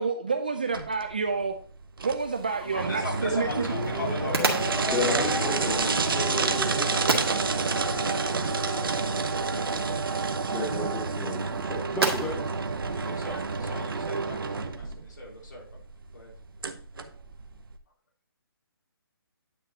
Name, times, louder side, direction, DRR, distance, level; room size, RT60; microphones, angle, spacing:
voice 1, 0.0-1.6 2.0-3.7, right 4 dB, 20° right, 7 dB, 0.3 m, -28 dB
sound 1, 0.7-17.8, right 4 dB, 65° right, 0.9 m, -29 dB
sound 2, 2.2-13.9, right 3 dB, 80° right, 1.9 m, -36 dB
voice 2, 2.5-6.0 9.5-10.0 13.0-15.6 16.1-16.3, left 2 dB, 50° left, -3 dB, 4.1 m, -39 dB
sound 3, 3.4-9.9, left 3 dB, 75° left, 3.7 m, -37 dB
voice 3, 4.9-7.2 9.3-9.8 10.5-12.5, left 1 dB, 5° left, -5 dB, 0.7 m, -32 dB
10.0 x 6.1 x 2.7 m, 0.43 s
hypercardioid pair, 175°, 13 cm